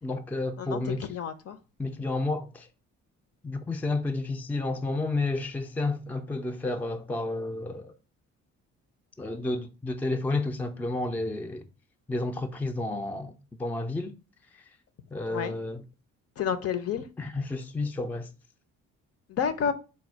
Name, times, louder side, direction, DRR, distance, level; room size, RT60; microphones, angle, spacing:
voice 1, 0.0-1.1 1.8-2.7 3.4-7.9 9.2-11.7 12.1-13.3 13.6-14.1 15.1-15.8 17.2-18.3, left 2 dB, 5° left, 0.4 m, -31 dB
voice 2, 1.1-1.6 15.3-15.5 16.4-17.1 19.3-19.7, left 7 dB, 50° left, 0.6 m, -29 dB
4.1 x 2.3 x 4.5 m
cardioid pair, 90°, 30 cm